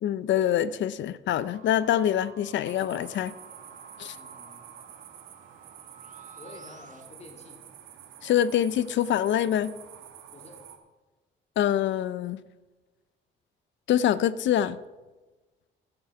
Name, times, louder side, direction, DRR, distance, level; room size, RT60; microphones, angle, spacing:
voice 1, 0.0-3.3 4.0-4.1 8.2-9.7 11.6-12.4 13.9-14.8, left 10 dB, 70° left, 0.5 m, -25 dB
sound 1, 1.3-7.0, right 5 dB, 40° right, 1.1 m, -51 dB
sound 2, 2.7-10.8, right 9 dB, 85° right, 1.2 m, -49 dB
voice 2, 4.1-4.7 6.4-7.6 10.3-10.6, left 2 dB, 35° left, 2.6 m, -49 dB
12.0 x 7.7 x 5.8 m
cardioid pair, 90°, 20 cm